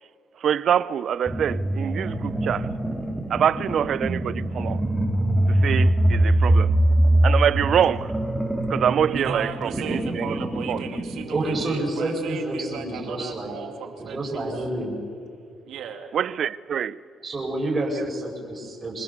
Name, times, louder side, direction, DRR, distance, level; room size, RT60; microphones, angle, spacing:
voice 1, 0.4-2.7 3.3-4.8 5.5-6.7 7.2-8.1 8.7-10.3 10.7-10.8 16.1-17.0, right 9 dB, 65° right, 0.6 m, -25 dB
sound 1, 1.3-11.7, right 1 dB, 5° right, 3.2 m, -23 dB
voice 2, 9.1-14.6 15.6-16.1, right 7 dB, 80° right, 2.5 m, -36 dB
voice 3, 11.3-13.5 14.0-15.0 17.2-19.0, right 2 dB, 30° right, 5.1 m, -28 dB
25.0 x 21.0 x 6.8 m
cardioid pair, 90°, 0 cm